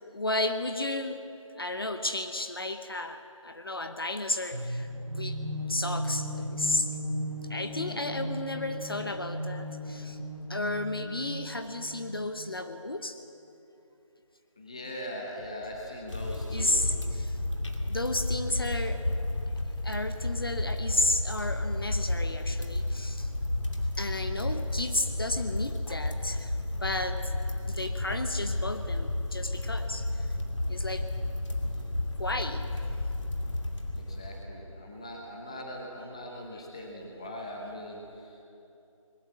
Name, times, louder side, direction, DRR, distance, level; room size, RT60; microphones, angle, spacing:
voice 1, 0.1-1.2 1.5-5.4 5.7-6.9 7.5-10.2 10.5-13.2 16.5-17.4 17.8-19.0 19.8-23.3 24.0-26.5 26.8-27.3 27.7-30.3 30.7-31.1 32.2-32.7, left 2 dB, 40° left, 8 dB, 0.9 m, -33 dB
sound 1, 4.5-12.3, equal, 15° right, 2.1 m, -36 dB
voice 2, 7.7-8.2 14.6-16.8 33.9-38.4, equal, 10° left, 0 dB, 1.1 m, -41 dB
sound 2, 16.1-34.4, left 1 dB, 60° left, 2.6 m, -32 dB
20.5 x 20.0 x 7.6 m, 2.8 s
figure-of-eight pair, 175°, 18 cm